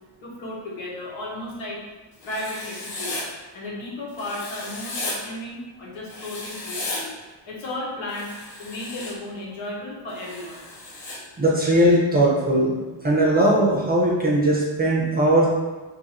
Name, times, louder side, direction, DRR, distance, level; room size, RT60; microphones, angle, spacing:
voice 1, 0.2-1.8 2.2-3.3 3.5-7.2 7.5-8.3 8.6-10.7, left 1 dB, 80° left, -4 dB, 1.1 m, -34 dB
Writing, 2.2-3.2 4.2-5.2 6.1-7.0 8.1-9.1 10.2-11.2, left 2 dB, 50° left, 0.7 m, -34 dB
voice 2, 11.4-12.8 13.0-15.5, right 1 dB, 20° right, -4 dB, 0.5 m, -19 dB
2.7 x 2.5 x 4.1 m, 1.2 s
wide cardioid pair, 155°, 47 cm